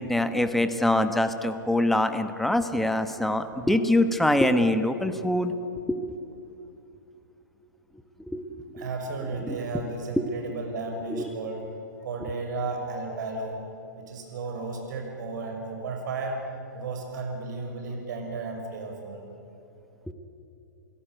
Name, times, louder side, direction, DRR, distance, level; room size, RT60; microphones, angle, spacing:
voice 1, 0.0-6.2 8.3-8.7 9.4-9.6 11.1-11.3 20.1-20.2, left 1 dB, ahead, 9 dB, 1.2 m, -24 dB
voice 2, 8.7-11.6 12.0-13.6 14.0-16.4 16.7-19.2, right 3 dB, 65° right, 3 dB, 6.3 m, -34 dB
29.0 x 16.5 x 9.3 m, 2.7 s
hypercardioid pair, 120°, 11 cm